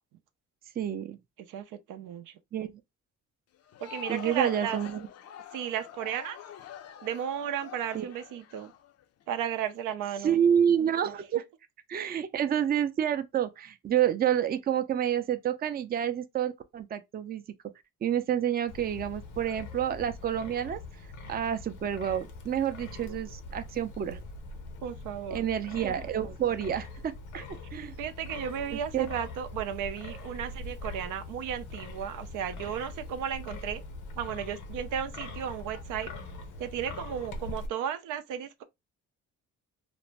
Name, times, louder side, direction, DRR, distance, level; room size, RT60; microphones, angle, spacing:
voice 1, 0.8-1.2 2.5-2.8 4.1-5.1 7.9-8.1 10.2-11.4 11.9-17.4 18.0-20.8 21.3-24.2 25.3-27.4 27.7-27.9 28.7-29.1, right 9 dB, 30° right, 0.4 m, -29 dB
voice 2, 1.5-2.3 3.8-4.8 5.5-6.4 7.0-8.7 9.3-10.4 23.0-23.2 24.8-25.4 28.0-33.8 34.2-36.1 36.6-38.6, right 9 dB, 85° right, 0.5 m, -34 dB
Crowd, 3.5-9.4, left 9 dB, 55° left, 0.4 m, -46 dB
Wind, 18.7-37.7, left 2 dB, 85° left, 0.7 m, -42 dB
2.5 x 2.0 x 3.1 m
cardioid pair, 90°, 30 cm